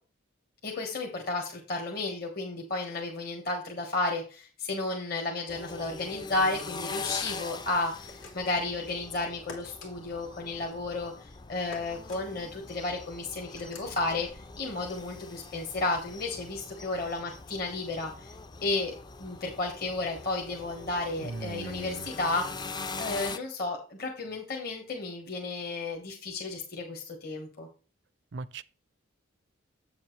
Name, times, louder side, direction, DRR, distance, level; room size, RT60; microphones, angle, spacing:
voice 1, 0.6-18.1 18.6-27.7, left 2 dB, 50° left, 1.5 m, -33 dB
sound 1, 5.5-23.4, left 4 dB, 20° left, 0.4 m, -42 dB
sound 2, 8.1-8.6 9.5-9.9 11.7-12.2 13.6-13.9, left 3 dB, 90° left, 2.8 m, -46 dB
voice 2, 21.2-22.1 28.3-28.6, right 3 dB, 60° right, 0.5 m, -39 dB
8.5 x 7.3 x 3.2 m
head